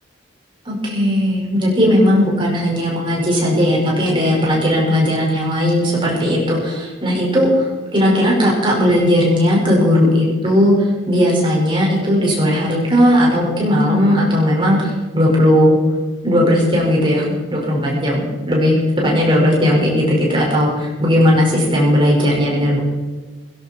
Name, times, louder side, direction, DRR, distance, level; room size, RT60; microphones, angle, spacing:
voice 1, 0.7-15.8 16.2-22.8, equal, 25° right, -3 dB, 5.6 m, -16 dB
18.5 x 16.0 x 4.6 m, 1.3 s
head